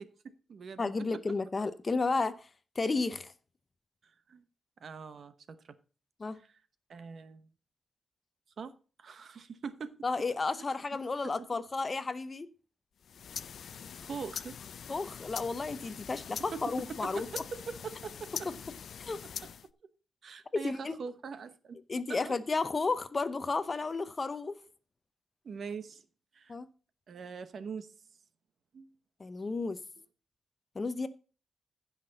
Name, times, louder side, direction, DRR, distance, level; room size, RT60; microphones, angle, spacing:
voice 1, 0.0-1.2 4.0-4.4 4.8-5.8 6.4-6.6 6.9-7.5 8.6-9.9 11.2-11.5 14.0-14.6 16.5-16.6 16.9-18.5 20.2-22.3 25.4-26.0 26.3-26.5 27.1-27.9 28.7-28.9, right 5 dB, 55° right, 0.9 m, -43 dB
voice 2, 0.8-2.5 2.8-3.3 6.2-6.4 10.0-12.5 14.9-17.3 19.0-19.2 20.6-20.9 21.9-24.6 26.5-26.7 29.2-29.8 30.8-31.1, left 3 dB, 30° left, 0.7 m, -32 dB
sound 1, 13.0-19.7, left 7 dB, 65° left, 0.4 m, -43 dB
15.5 x 5.9 x 3.9 m
wide cardioid pair, 125°, 0 cm